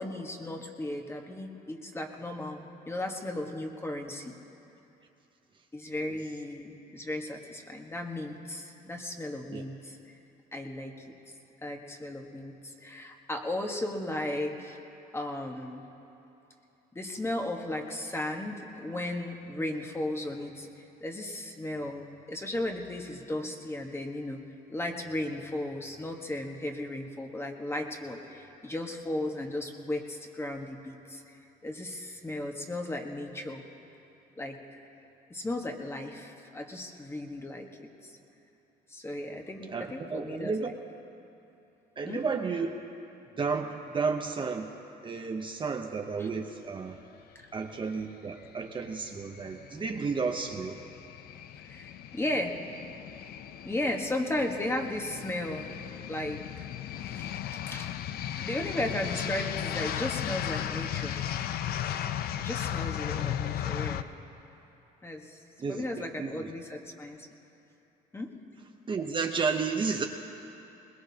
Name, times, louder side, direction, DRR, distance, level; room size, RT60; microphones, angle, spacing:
voice 1, 0.0-4.3 5.7-10.0 10.5-10.9 11.6-14.8 15.1-15.8 16.9-24.4 24.7-31.2 31.6-33.6 34.4-34.8 35.3-37.7 38.0-38.2 38.9-40.5 42.0-42.2 46.2-46.3 51.6-52.6 53.6-55.8 56.1-56.7 57.0-57.9 58.4-61.2 62.4-64.1 65.0-65.4 65.7-67.3 68.1-68.3, left 1 dB, 15° left, 3 dB, 1.3 m, -35 dB
voice 2, 39.7-40.8 42.0-42.8 43.4-44.7 45.0-47.0 47.5-50.8 65.6-66.5 68.9-70.0, right 5 dB, 30° right, 3 dB, 0.8 m, -32 dB
sound 1, 48.3-64.0, left 10 dB, 65° left, 0.6 m, -36 dB
21.0 x 20.0 x 2.8 m, 2.9 s
cardioid pair, 110°, 17 cm